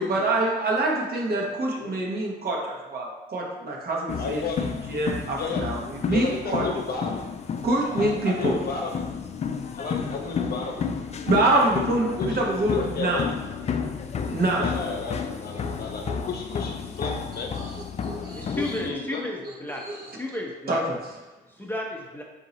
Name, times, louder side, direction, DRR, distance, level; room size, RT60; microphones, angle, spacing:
voice 1, 0.0-6.6 7.6-8.6 11.3-13.2 14.3-14.6 15.6-16.3 17.6-18.6 19.7-20.2 20.7-21.0, right 2 dB, 50° right, -2 dB, 1.0 m, -26 dB
sound 1, 4.1-18.9, left 6 dB, 35° left, 0.4 m, -31 dB
voice 2, 4.2-4.7 5.4-5.7 6.1-7.3 7.9-9.1 9.7-10.8 11.3-11.6 12.1-13.3 14.5-17.5 18.5-19.2, left 4 dB, 50° left, 1 dB, 0.8 m, -32 dB
voice 3, 18.3-19.8 20.2-20.8 21.6-22.2, left 1 dB, 10° left, -1 dB, 0.7 m, -33 dB
3.8 x 2.8 x 4.0 m, 1.1 s
cardioid pair, 90°, 20 cm